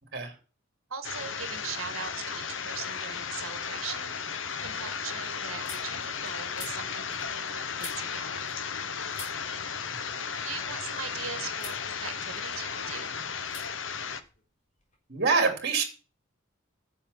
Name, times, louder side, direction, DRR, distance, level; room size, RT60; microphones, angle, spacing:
voice 1, 0.9-4.2 4.6-8.6 10.4-13.1, right 7 dB, 80° right, 9 dB, 1.7 m, -40 dB
sound 1, 1.0-14.2, left 6 dB, 65° left, 1.0 m, -35 dB
sound 2, 2.9-3.4 3.8-8.9 9.1-11.2 11.5-11.9 12.2-12.9 13.5-13.7 13.9-15.0, left 4 dB, 35° left, 3.8 m, -48 dB
voice 2, 15.1-15.8, right 4 dB, 50° right, 5 dB, 2.8 m, -25 dB
10.0 x 7.5 x 7.2 m, 0.35 s
head